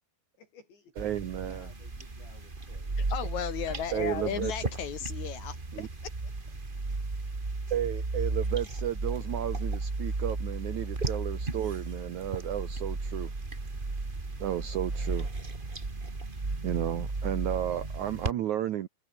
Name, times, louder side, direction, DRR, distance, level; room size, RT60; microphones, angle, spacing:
voice 1, 0.4-1.0 1.4-3.1, left 4 dB, 85° left, 10.5 m, -56 dB
sound 1, 1.0-18.3, right 3 dB, 25° right, 1.1 m, -34 dB
voice 2, 1.0-1.7 3.9-4.5 5.7-5.9 7.7-13.3 14.4-15.3 16.6-18.9, right 11 dB, 80° right, 1.7 m, -33 dB
voice 3, 3.0-5.9, left 8 dB, 60° left, 2.1 m, -35 dB
omnidirectional pair, 5.0 m